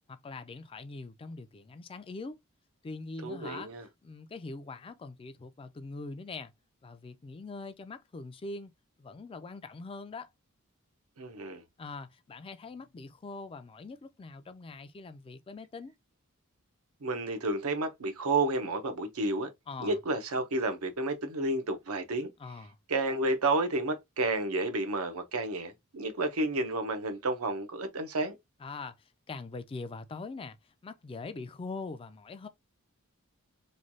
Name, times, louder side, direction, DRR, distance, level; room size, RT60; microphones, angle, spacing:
voice 1, 0.1-2.4 2.8-3.7 4.0-6.5 6.8-8.7 9.0-10.3 11.8-16.0 19.7-20.0 22.4-22.8 28.6-32.5, left 3 dB, 25° left, 0.3 m, -42 dB
voice 2, 3.2-3.8 11.2-11.6 17.0-19.5 19.8-22.3 22.9-28.4, right 2 dB, 85° right, 0.7 m, -31 dB
3.2 x 2.2 x 2.5 m
head